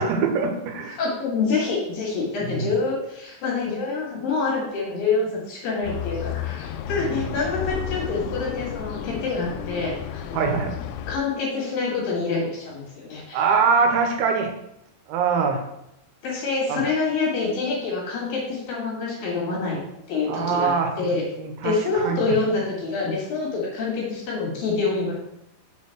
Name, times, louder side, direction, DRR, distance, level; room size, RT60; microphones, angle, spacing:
voice 1, 0.0-1.0 2.5-2.7 7.0-7.1 10.3-10.8 13.3-14.5 15.1-15.6 16.7-16.8 20.3-20.9 21.4-21.7 22.0-22.2, right 5 dB, 90° right, 4 dB, 3.3 m, -23 dB
voice 2, 0.9-10.7 11.1-13.4 16.2-19.8 20.1-21.2 21.6-25.1, left 4 dB, 60° left, -4 dB, 3.1 m, -26 dB
sound 1, 5.8-11.2, left 9 dB, 90° left, 2.3 m, -32 dB
6.9 x 4.4 x 5.8 m, 0.84 s
omnidirectional pair, 5.2 m